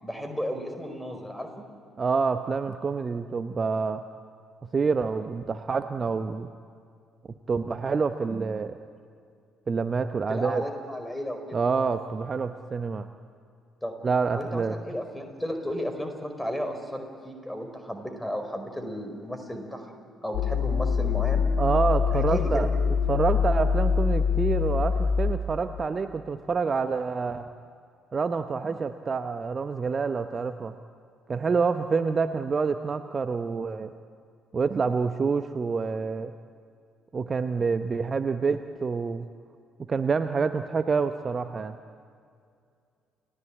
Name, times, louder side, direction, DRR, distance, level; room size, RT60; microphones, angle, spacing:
voice 1, 0.0-1.6 10.3-11.6 13.8-13.9 14.3-19.9 20.2-21.4 22.1-22.6, equal, 5° left, 6 dB, 4.7 m, -34 dB
voice 2, 2.0-4.0 4.7-6.5 7.5-8.8 9.7-10.6 11.5-13.1 14.0-14.7 21.6-22.7 23.1-27.5 28.1-30.7 31.3-33.9 34.5-36.3 37.1-39.3 39.9-41.8, right 5 dB, 35° right, 10 dB, 0.9 m, -27 dB
sound 1, 20.3-25.3, left 6 dB, 65° left, 1.8 m, -24 dB
29.5 x 17.0 x 8.7 m, 2.3 s
figure-of-eight pair, 45°, 0 cm